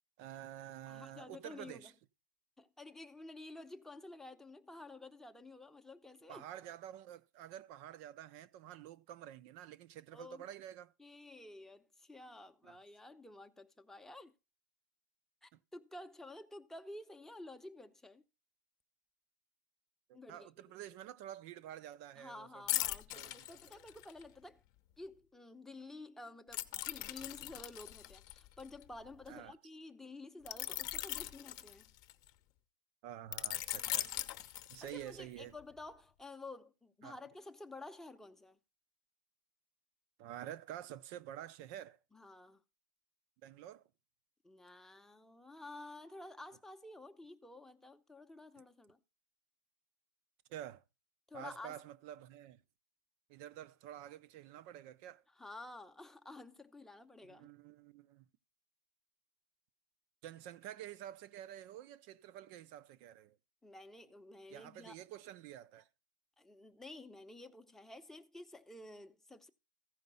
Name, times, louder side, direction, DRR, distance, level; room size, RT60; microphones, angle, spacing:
voice 1, 0.2-1.9 6.3-10.9 12.6-12.8 15.5-15.6 20.1-22.5 23.1-23.6 29.3-29.5 33.0-34.1 34.7-35.5 37.0-37.1 40.2-42.0 43.4-43.8 50.5-50.8 51.3-52.6 53.3-55.2 57.3-58.3 60.2-63.4 64.5-65.9, right 11 dB, 45° right, 0.7 m, -49 dB
voice 2, 0.9-1.9 2.6-6.4 10.1-10.5 11.0-14.3 15.4-18.2 20.1-20.5 22.2-24.6 25.0-31.9 33.7-34.2 34.8-38.6 42.1-42.6 44.4-49.0 51.3-51.8 55.4-57.5 63.6-65.0 66.4-69.5, left 2 dB, 5° left, 0.8 m, -51 dB
sound 1, 22.7-24.2 26.5-29.3 30.5-32.3 33.3-35.2 35.6-35.8, left 14 dB, 40° left, 0.8 m, -40 dB
15.0 x 5.2 x 5.5 m
hypercardioid pair, 125°, 11 cm